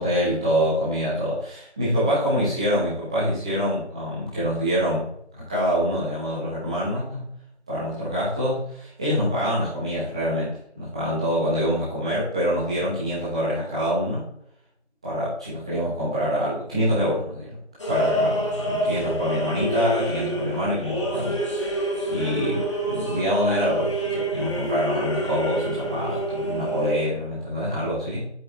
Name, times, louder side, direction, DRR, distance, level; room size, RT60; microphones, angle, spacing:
voice 1, 0.0-7.3 7.7-14.2 15.0-17.5 17.9-28.3, equal, 5° right, -10 dB, 1.0 m, -25 dB
sound 1, 17.8-26.9, right 1 dB, 25° left, 1.2 m, -27 dB
8.1 x 7.0 x 3.2 m, 0.68 s
figure-of-eight pair, 160°, 34 cm